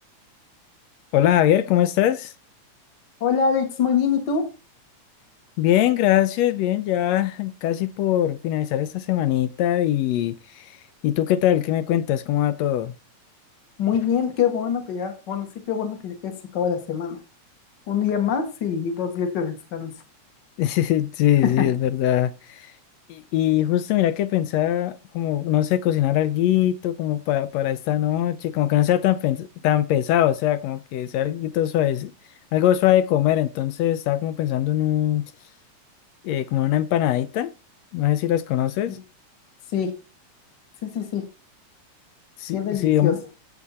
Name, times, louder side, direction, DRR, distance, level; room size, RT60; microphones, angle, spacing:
voice 1, 1.1-2.3 5.6-10.8 11.0-12.9 20.6-22.7 23.1-32.1 32.5-35.3 36.2-37.5 37.9-39.0 42.4-43.2, left 12 dB, 75° left, 1.7 m, -22 dB
voice 2, 3.2-4.5 13.8-17.2 17.9-19.9 21.4-21.7 38.9-39.0 39.7-39.9 40.8-41.2 42.5-43.2, left 7 dB, 40° left, 2.3 m, -24 dB
15.5 x 6.9 x 4.2 m
omnidirectional pair, 3.3 m